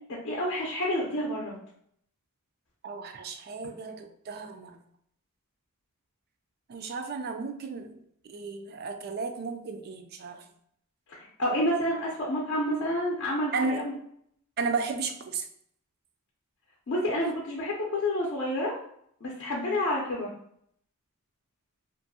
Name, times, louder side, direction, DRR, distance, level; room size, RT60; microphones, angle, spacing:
voice 1, 0.1-1.5 11.1-13.8 16.9-18.7 19.2-20.3, left 1 dB, 55° left, -3 dB, 0.6 m, -29 dB
voice 2, 2.8-4.8 6.7-7.9 8.3-10.4 13.5-13.8 14.6-15.5, right 4 dB, 45° right, 7 dB, 0.3 m, -34 dB
2.6 x 2.5 x 2.6 m, 0.68 s
head